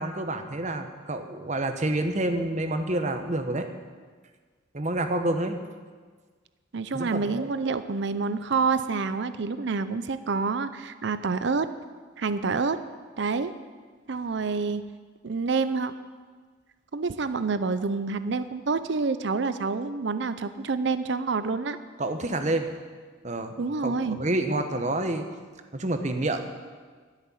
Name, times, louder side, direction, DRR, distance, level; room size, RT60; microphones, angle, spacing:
voice 1, 0.0-3.7 4.7-5.6 6.9-7.5 22.0-22.7 23.2-23.5 23.8-25.3 25.7-26.5, right 1 dB, 35° right, 7 dB, 1.0 m, -28 dB
voice 2, 6.7-11.7 12.2-12.8 13.2-13.5 14.1-14.8 15.2-15.9 16.9-21.8 23.6-24.2, right 4 dB, 60° right, 12 dB, 0.5 m, -27 dB
12.5 x 6.6 x 9.9 m, 1.5 s
head